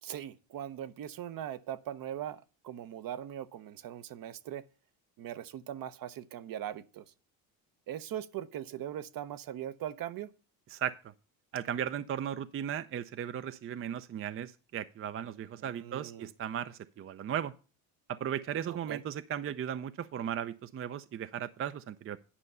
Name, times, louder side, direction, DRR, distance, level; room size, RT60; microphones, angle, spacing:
voice 1, 0.0-4.6 5.2-7.0 7.9-10.3 15.6-16.3 18.7-19.0, right 11 dB, 55° right, 0.8 m, -40 dB
voice 2, 11.5-17.5 18.1-22.2, right 9 dB, 30° right, 0.5 m, -36 dB
10.0 x 5.4 x 6.7 m
supercardioid pair, 90°, 42 cm